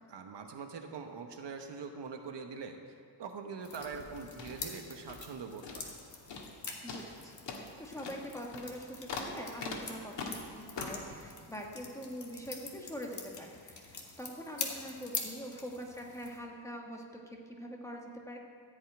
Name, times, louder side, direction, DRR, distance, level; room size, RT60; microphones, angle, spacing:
voice 1, 0.1-2.9 3.2-5.9, right 5 dB, 70° right, 5 dB, 1.2 m, -43 dB
sound 1, 3.6-16.4, left 4 dB, 45° left, 1.7 m, -45 dB
sound 2, 3.7-5.4 5.6-6.0 6.3-6.6 6.9-11.1, left 4 dB, 80° left, 1.7 m, -43 dB
voice 2, 6.8-18.4, equal, 5° left, 0 dB, 1.4 m, -44 dB
15.0 x 5.6 x 9.0 m, 2.2 s
wide cardioid pair, 140°, 43 cm